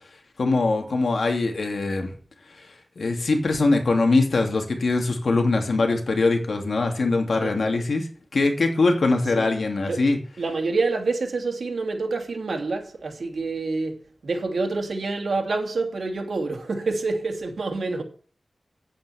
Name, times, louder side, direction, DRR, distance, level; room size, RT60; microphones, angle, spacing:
voice 1, 0.4-2.1 3.0-8.1 8.3-10.2, left 3 dB, 75° left, 2.6 m, -22 dB
voice 2, 7.4-7.8 9.4-9.5 9.9-10.0 10.4-14.0 14.2-18.0, right 3 dB, 80° right, 2.7 m, -27 dB
9.4 x 8.9 x 7.0 m
wide cardioid pair, 90°, 0 cm